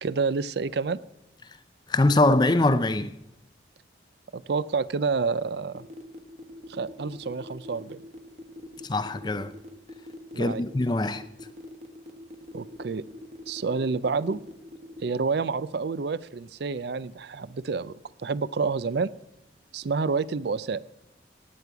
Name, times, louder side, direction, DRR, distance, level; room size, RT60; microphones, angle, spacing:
voice 1, 0.0-1.0 4.3-5.9 6.7-8.0 10.3-10.6 12.5-13.0 13.5-14.4 15.0-19.1 19.7-20.8, right 4 dB, 60° right, 0.4 m, -28 dB
voice 2, 1.9-3.1 8.8-9.5 10.4-11.2, left 2 dB, 25° left, 0.4 m, -23 dB
sound 1, 5.7-15.1, left 2 dB, 35° right, 1.5 m, -43 dB
16.0 x 9.3 x 4.7 m
head